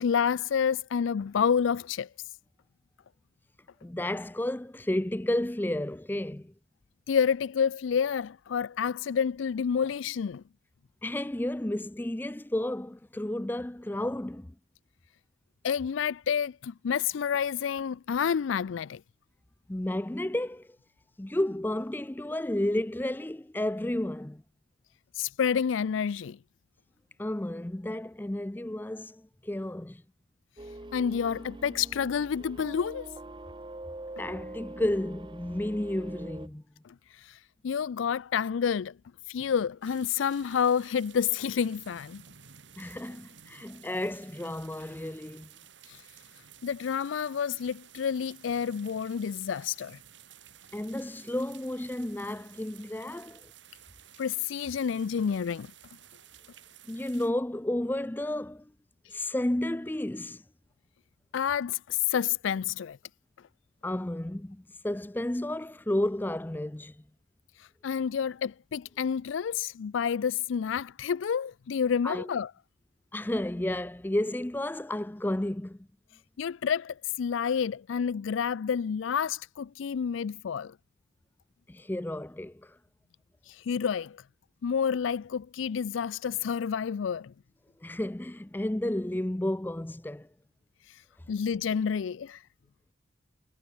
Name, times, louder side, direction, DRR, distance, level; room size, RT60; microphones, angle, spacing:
voice 1, 0.0-2.1 7.1-10.4 15.6-19.0 25.1-26.4 30.9-33.1 36.8-37.4 37.6-38.9 39.3-42.2 45.9-46.0 46.6-50.0 54.2-55.7 61.3-63.0 67.6-72.5 76.4-80.7 83.5-84.2 84.6-87.3 90.9-91.0 91.3-92.4, left 7 dB, 85° left, 0.4 m, -29 dB
voice 2, 3.8-6.5 11.0-14.5 19.7-20.7 21.2-24.4 27.2-30.0 34.2-36.6 42.8-45.5 50.7-53.5 56.9-58.7 59.1-60.4 63.8-67.0 72.0-72.3 73.1-75.8 81.7-82.8 87.8-90.3, left 1 dB, 10° left, 0.4 m, -32 dB
sound 1, 30.6-36.5, right 1 dB, 25° right, 0.9 m, -44 dB
sound 2, 39.8-57.3, right 9 dB, 75° right, 5.9 m, -54 dB
head